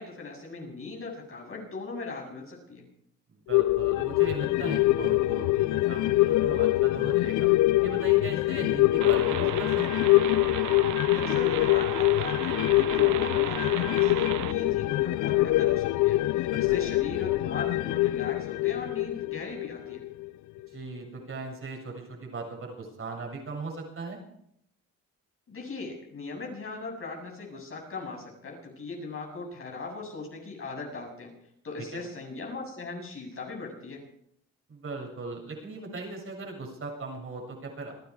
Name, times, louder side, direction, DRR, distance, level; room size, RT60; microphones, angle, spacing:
voice 1, 0.0-2.8 11.1-20.0 25.5-31.3 31.6-34.0, left 3 dB, 45° left, 1 dB, 7.8 m, -39 dB
voice 2, 3.3-7.5 7.8-10.1 16.7-16.8 20.7-24.2 31.9-32.0 34.7-37.9, right 3 dB, 45° right, 1 dB, 7.3 m, -38 dB
sound 1, 3.5-20.3 20.6-20.7, left 18 dB, 80° left, 0.5 m, -24 dB
sound 2, 9.0-14.5, right 13 dB, 80° right, 0.9 m, -36 dB
28.5 x 10.5 x 4.9 m, 0.72 s
cardioid pair, 90°, 30 cm